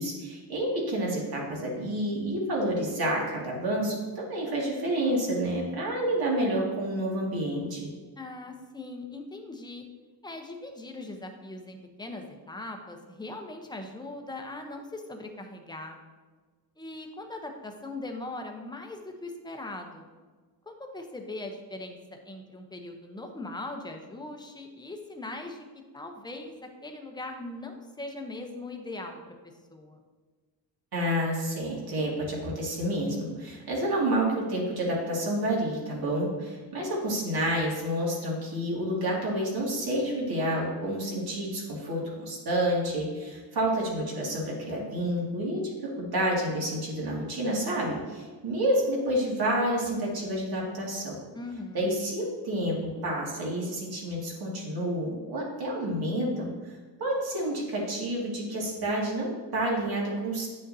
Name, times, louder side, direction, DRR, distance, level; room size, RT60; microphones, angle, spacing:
voice 1, 0.0-7.9 30.9-51.2 51.7-56.7 57.0-60.5, right 1 dB, 60° right, -3 dB, 2.3 m, -29 dB
voice 2, 8.2-9.8 10.2-16.0 16.8-20.1 20.7-25.7 25.9-29.3 29.7-30.0 51.3-51.9, left 2 dB, 10° left, 3 dB, 0.8 m, -40 dB
9.7 x 6.4 x 2.8 m, 1.4 s
cardioid pair, 130°, 42 cm